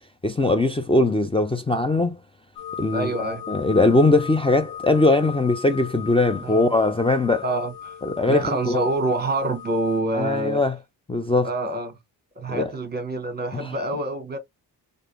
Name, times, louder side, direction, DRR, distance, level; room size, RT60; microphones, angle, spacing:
voice 1, 0.2-2.2 2.8-7.4 8.0-8.8 10.1-10.7 11.1-11.5 12.5-12.7 13.6-13.7, left 2 dB, 15° left, 0.3 m, -21 dB
sound 1, 2.6-10.0, left 8 dB, 65° left, 0.6 m, -38 dB
voice 2, 2.9-3.4 6.4-6.7 7.4-7.9 8.3-10.6 11.4-12.0 12.4-14.4, right 2 dB, 25° right, 1.0 m, -26 dB
3.4 x 2.6 x 2.5 m
cardioid pair, 95°, 42 cm